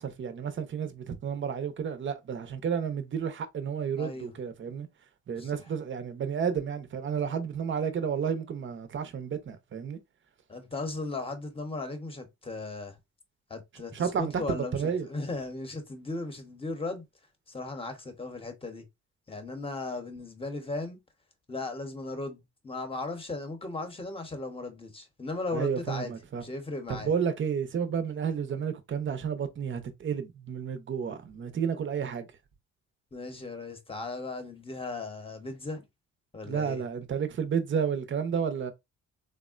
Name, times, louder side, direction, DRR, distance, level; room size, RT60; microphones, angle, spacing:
voice 1, 0.0-4.9 5.3-10.0 13.9-15.1 25.5-26.4 26.9-32.3 36.5-38.7, right 7 dB, 40° right, 0.7 m, -31 dB
voice 2, 4.0-4.4 5.3-5.6 10.5-13.0 13.5-17.0 17.5-18.9 19.3-21.0 21.5-27.1 33.1-35.8 36.3-36.8, left 3 dB, 20° left, 0.9 m, -37 dB
3.5 x 2.1 x 2.4 m
cardioid pair, 90°, 30 cm